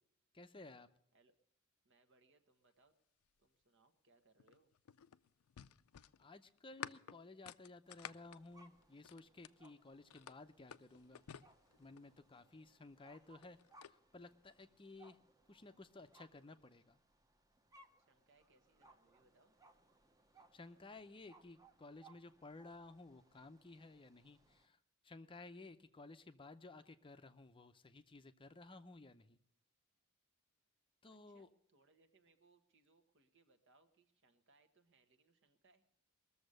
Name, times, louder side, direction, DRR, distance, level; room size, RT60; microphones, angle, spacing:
voice 1, 0.3-0.9 6.2-11.2 11.8-15.2 15.5-17.0 20.5-24.8 25.0-29.4 31.0-31.5, left 2 dB, 25° left, 9 dB, 0.6 m, -56 dB
voice 2, 1.8-3.0 3.4-4.7 18.0-19.5 31.1-35.8, right 3 dB, 60° right, 8 dB, 1.4 m, -73 dB
sound 1, 4.4-9.7 10.1-12.2 13.2-14.0, left 9 dB, 90° left, 0.5 m, -53 dB
sound 2, 7.8-24.7, right 2 dB, 15° right, 0.8 m, -68 dB
21.0 x 7.1 x 6.5 m, 0.70 s
head